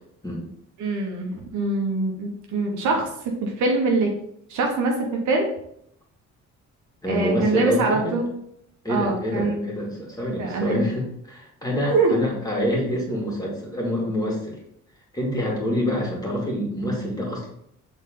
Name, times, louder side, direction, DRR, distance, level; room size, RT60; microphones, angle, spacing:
voice 1, 0.8-3.1 3.4-4.1 4.5-4.9 5.3-5.5 7.1-8.2 8.9-9.6 10.4-10.8 11.9-12.1, right 3 dB, 75° right, 1 dB, 1.3 m, -23 dB
voice 2, 7.0-8.2 8.8-14.6 15.1-17.5, equal, 10° left, -2 dB, 2.5 m, -26 dB
6.4 x 4.0 x 3.8 m, 0.73 s
cardioid pair, 90°, 30 cm